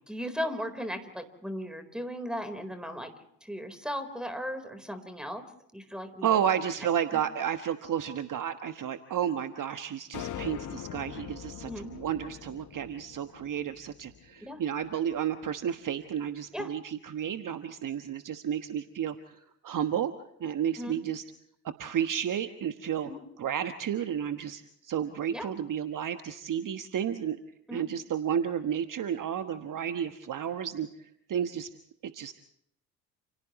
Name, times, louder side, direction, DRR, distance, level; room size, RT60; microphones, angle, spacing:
voice 1, 0.1-3.1 3.4-5.4 5.7-6.4 7.1-7.2 11.7-11.9 14.4-14.6 16.5-16.8 20.8-21.0 23.0-23.2 25.3-25.5 27.7-27.8, equal, ahead, 8 dB, 4.2 m, -36 dB
voice 2, 6.2-20.1 20.4-21.2 21.6-23.1 23.4-27.4 27.7-30.9 31.3-31.7 32.0-32.3, right 9 dB, 40° right, 9 dB, 1.4 m, -32 dB
sound 1, 10.1-14.6, left 10 dB, 35° left, 1.2 m, -42 dB
29.5 x 29.0 x 3.1 m, 0.74 s
figure-of-eight pair, 55°, 50 cm